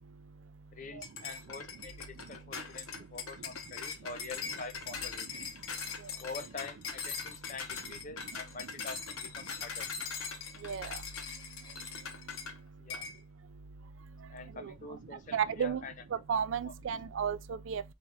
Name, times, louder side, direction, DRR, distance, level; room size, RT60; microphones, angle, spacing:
voice 1, 0.7-5.5 6.2-9.9 12.8-13.1 14.3-15.9 16.7-16.8, left 4 dB, 35° left, 0.5 m, -46 dB
sound 1, 1.0-12.6 12.9-13.2, left 5 dB, 80° left, 0.9 m, -41 dB
voice 2, 10.6-11.0 14.6-14.7 15.3-15.8 16.3-17.8, right 7 dB, 60° right, 0.3 m, -33 dB
4.1 x 2.5 x 4.6 m
head